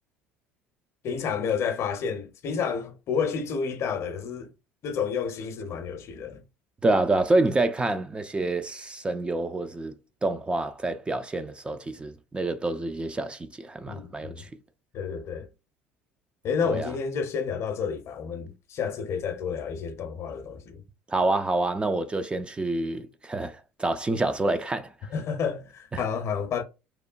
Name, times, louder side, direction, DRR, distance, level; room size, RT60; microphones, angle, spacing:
voice 1, 1.0-4.5 4.8-6.4 13.9-14.5 14.9-15.5 16.4-20.8 25.1-26.6, left 6 dB, 50° left, 0.6 m, -30 dB
voice 2, 6.8-9.9 10.2-14.5 16.7-16.9 21.1-24.9 25.9-26.0, right 2 dB, 15° right, 0.3 m, -27 dB
3.0 x 2.0 x 2.4 m
hypercardioid pair, 75°, 6 cm